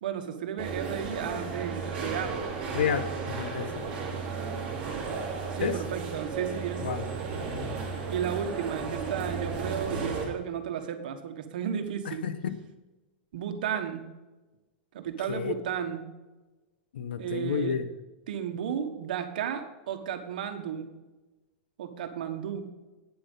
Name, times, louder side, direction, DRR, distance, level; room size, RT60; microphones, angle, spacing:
voice 1, 0.0-2.4 5.5-6.9 8.1-12.2 13.3-14.0 14.9-16.0 17.2-17.8 18.3-20.9 21.8-22.7, right 8 dB, 60° right, 7 dB, 1.3 m, -33 dB
sound 1, 0.6-10.3, right 4 dB, 20° right, 2.6 m, -34 dB
voice 2, 2.7-3.8 5.6-5.8 6.8-7.1 12.1-12.5 15.3-15.5 16.9-17.8, left 7 dB, 75° left, 12 dB, 1.0 m, -30 dB
9.1 x 7.7 x 5.4 m, 1.1 s
supercardioid pair, 175°, 5 cm